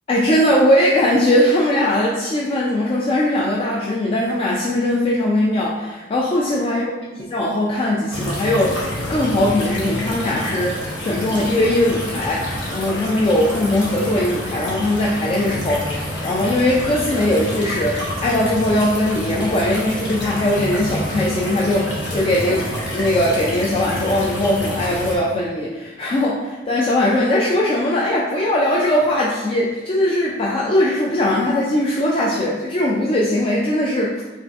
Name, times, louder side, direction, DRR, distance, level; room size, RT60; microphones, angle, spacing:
voice 1, 0.1-6.8 7.3-34.1, left 1 dB, 30° left, -4 dB, 0.3 m, -20 dB
sound 1, 8.1-25.2, equal, 70° left, 1.0 m, -28 dB
3.6 x 3.1 x 2.5 m, 1.2 s
head